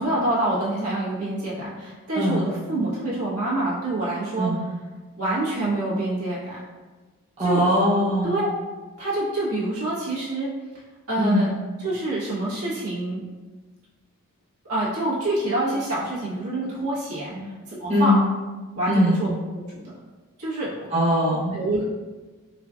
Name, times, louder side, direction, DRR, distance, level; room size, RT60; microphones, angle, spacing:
voice 1, 0.0-4.6 5.2-6.6 7.4-7.6 8.2-8.5 9.0-10.5 11.1-11.5 11.8-13.2 14.7-17.3 17.7-18.2 18.7-19.6 20.4-20.9 21.5-21.8, right 2 dB, 80° right, -8 dB, 1.4 m, -26 dB
voice 2, 2.2-2.5 4.4-4.5 7.4-8.3 11.2-11.5 17.3-17.5 17.9-18.2 18.9-19.2 20.9-21.6, equal, 30° right, -9 dB, 0.9 m, -21 dB
4.9 x 2.4 x 2.5 m, 1.3 s
head